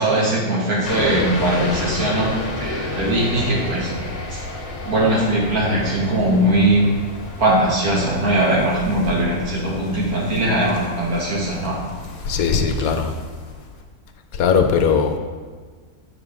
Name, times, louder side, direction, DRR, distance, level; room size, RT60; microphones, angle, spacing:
voice 1, 0.0-2.3 2.6-3.9 4.3-4.4 4.8-7.0 7.4-11.8, right 1 dB, 75° right, -5 dB, 2.3 m, -20 dB
sound 1, 0.8-13.8, left 2 dB, 55° left, 1.3 m, -31 dB
voice 2, 12.3-13.1 14.3-15.2, left 6 dB, 70° left, 5 dB, 1.1 m, -19 dB
7.6 x 6.9 x 3.6 m, 1.5 s
omnidirectional pair, 1.6 m